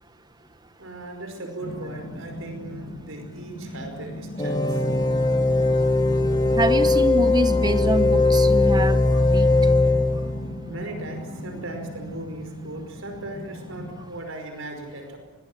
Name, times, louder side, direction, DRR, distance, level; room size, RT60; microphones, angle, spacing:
voice 1, 0.8-4.8 10.7-15.2, right 2 dB, 70° right, 5 dB, 5.2 m, -37 dB
sound 1, 1.6-14.1, left 1 dB, 50° left, 3.3 m, -38 dB
sound 2, 4.4-10.5, left 2 dB, 20° left, 2.0 m, -20 dB
voice 2, 6.6-9.5, right 1 dB, 20° right, 10 dB, 1.1 m, -25 dB
23.5 x 19.5 x 9.2 m, 1.1 s
head